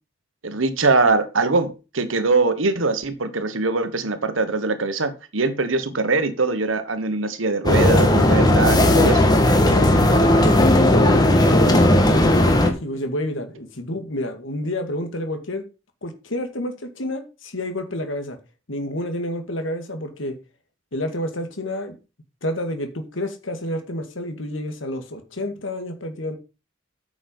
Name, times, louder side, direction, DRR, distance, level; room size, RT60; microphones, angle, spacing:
voice 1, 0.4-9.2, right 3 dB, 85° right, 1.3 m, -22 dB
sound 1, 7.7-12.7, left 1 dB, 20° left, 1.4 m, -16 dB
voice 2, 9.7-12.0 12.6-15.6 16.0-18.4 18.7-20.4 20.9-22.0 22.4-26.4, left 1 dB, 80° left, 2.0 m, -29 dB
9.2 x 6.2 x 5.3 m
head